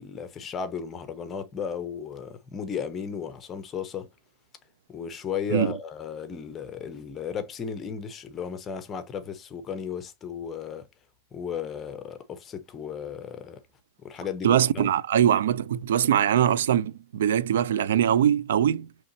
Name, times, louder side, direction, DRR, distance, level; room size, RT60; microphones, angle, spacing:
voice 1, 0.0-4.1 4.9-10.9 11.3-13.6 14.0-14.9, left 7 dB, 20° left, 0.7 m, -35 dB
voice 2, 14.4-18.9, right 10 dB, 90° right, 0.4 m, -22 dB
5.1 x 3.1 x 2.7 m
supercardioid pair, 160°, 0 cm